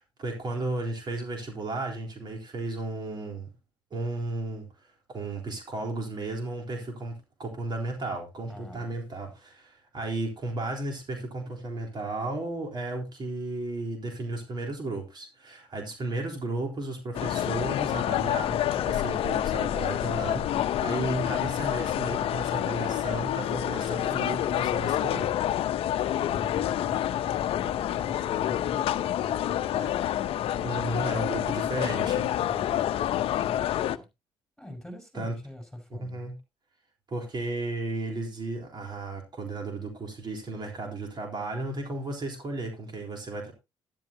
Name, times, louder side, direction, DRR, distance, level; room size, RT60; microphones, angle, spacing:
voice 1, 0.0-3.5 3.9-7.1 7.4-25.3 29.7-29.9 30.6-32.3 35.1-35.3 36.0-36.3 37.1-43.5, right 2 dB, 45° right, 3.8 m, -34 dB
voice 2, 8.5-9.0 26.3-30.1 32.4-34.1 34.6-36.3, left 1 dB, 5° left, 5.5 m, -45 dB
sound 1, 17.1-34.0, left 11 dB, 65° left, 0.8 m, -28 dB
12.5 x 11.0 x 2.8 m
supercardioid pair, 65°, 10 cm